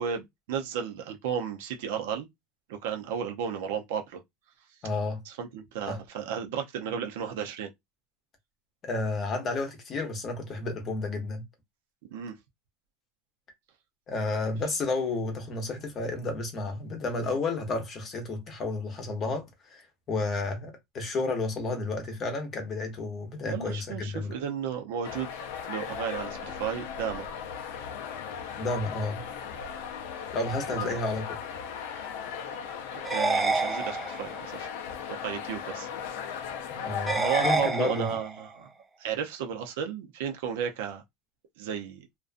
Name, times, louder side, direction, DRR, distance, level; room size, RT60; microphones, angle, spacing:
voice 1, 0.0-2.3 2.7-4.2 5.3-7.7 12.1-12.3 23.4-25.4 25.7-27.3 30.7-31.0 33.1-34.7 35.2-35.9 37.2-38.7 39.0-41.0 41.6-42.1, right 8 dB, 75° right, 0.6 m, -33 dB
voice 2, 4.8-5.2 5.9-6.0 8.8-11.4 14.1-19.8 20.1-24.4 28.6-29.2 30.3-31.2 31.9-32.1 36.7-38.1, left 3 dB, 25° left, 0.7 m, -31 dB
Ambience Large Crowd A, 25.0-37.6, left 7 dB, 75° left, 0.5 m, -37 dB
sound 1, 33.0-34.5 37.1-38.5, right 3 dB, 10° right, 0.3 m, -28 dB
2.5 x 2.2 x 2.4 m
supercardioid pair, 165°, 0 cm